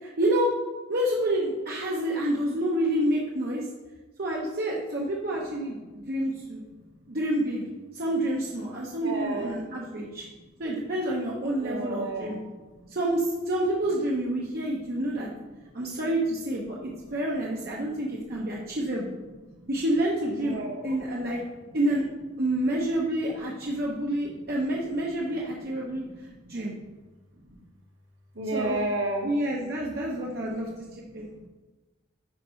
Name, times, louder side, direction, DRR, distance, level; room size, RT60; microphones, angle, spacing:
voice 1, 0.0-0.5 0.9-3.7 4.2-6.6 7.1-7.7 7.9-10.2 10.6-12.4 12.9-15.3 15.7-19.1 19.7-20.6 20.8-21.4 21.7-22.0 22.4-26.0 26.5-26.7 28.5-28.8 29.2-31.3, right 1 dB, 50° right, -3 dB, 0.8 m, -28 dB
voice 2, 9.0-9.5 11.6-12.4 19.5-19.7 20.4-21.0 25.9-26.9 27.4-27.5 28.3-29.3 30.9-31.5, right 2 dB, 65° right, 0 dB, 1.3 m, -33 dB
10.5 x 4.5 x 3.1 m, 1.2 s
head